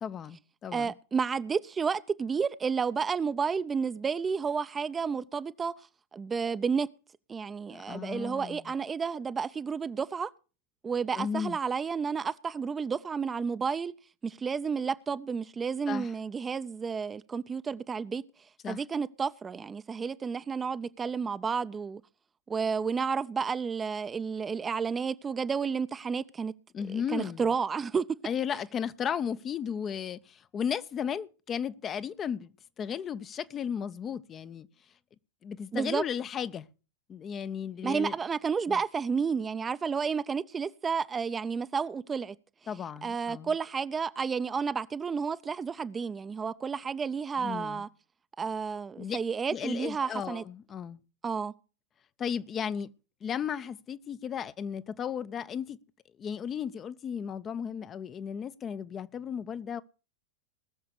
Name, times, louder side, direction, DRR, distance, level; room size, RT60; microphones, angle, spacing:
voice 1, 0.0-0.9 7.7-8.7 11.1-11.6 15.9-16.1 18.6-18.8 26.7-27.5 28.2-32.5 32.8-34.7 35.4-36.7 37.1-38.2 38.7-38.8 42.7-43.5 47.4-47.8 49.0-49.2 49.5-51.0 52.2-52.9 53.2-55.8 56.2-59.8, left 7 dB, 25° left, 0.6 m, -35 dB
voice 2, 0.7-5.7 6.1-6.9 7.3-10.3 10.8-13.9 14.2-18.2 18.7-22.0 22.5-26.5 27.1-28.1 35.7-36.0 37.8-42.3 43.0-47.9 48.4-50.4 51.2-51.5, right 5 dB, 15° right, 0.6 m, -31 dB
19.5 x 6.8 x 6.5 m
figure-of-eight pair, 90°, 0 cm